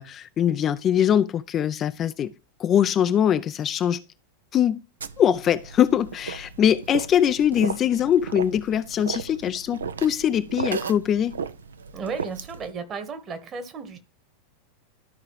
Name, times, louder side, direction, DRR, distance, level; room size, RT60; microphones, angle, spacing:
voice 1, 0.0-2.3 2.6-4.0 4.5-4.8 5.2-11.3, left 9 dB, 30° left, 0.4 m, -22 dB
sound 1, 5.0-12.7, right 6 dB, 70° right, 0.5 m, -35 dB
voice 2, 11.9-14.0, right 5 dB, 30° right, 1.4 m, -34 dB
13.0 x 4.8 x 3.1 m
figure-of-eight pair, 90°, 0 cm